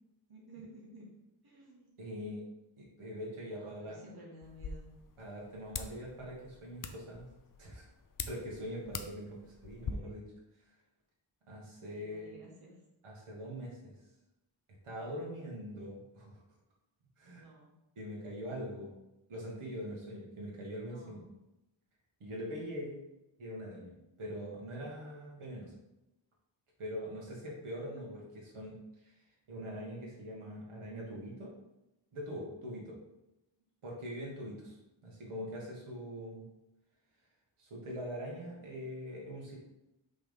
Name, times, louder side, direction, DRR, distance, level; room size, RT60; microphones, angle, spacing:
voice 1, 0.3-1.1 1.4-1.9 3.6-4.9 9.8-10.2 11.9-12.8 17.4-17.7 20.9-21.3, right 1 dB, 50° right, -4 dB, 1.7 m, -54 dB
voice 2, 2.0-2.4 2.8-4.0 5.2-7.3 7.6-7.8 8.2-10.2 11.4-12.3 13.0-13.9 14.8-16.4 17.2-17.4 18.0-18.9 19.3-21.2 22.2-23.0 23.4-25.7 26.8-29.1 29.5-31.5 32.1-33.0 33.8-34.7 35.0-36.5 37.6-39.6, equal, 85° right, -3 dB, 2.0 m, -43 dB
sound 1, 4.4-9.9, left 6 dB, 45° left, 0.5 m, -45 dB
5.9 x 3.7 x 5.4 m, 0.92 s
wide cardioid pair, 155°, 48 cm